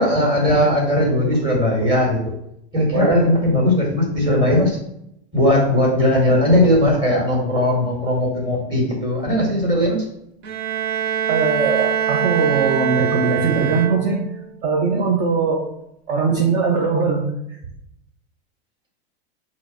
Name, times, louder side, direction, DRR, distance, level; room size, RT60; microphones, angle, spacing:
voice 1, 0.0-2.2 2.7-4.8 5.3-10.0, left 1 dB, 15° right, -3 dB, 2.2 m, -18 dB
voice 2, 2.9-3.3 11.3-14.3 14.6-15.7 16.1-17.6, right 4 dB, 40° right, 2 dB, 0.8 m, -20 dB
Bowed string instrument, 10.4-14.4, right 9 dB, 65° right, 0.9 m, -23 dB
5.9 x 3.2 x 5.6 m, 0.77 s
supercardioid pair, 145°, 33 cm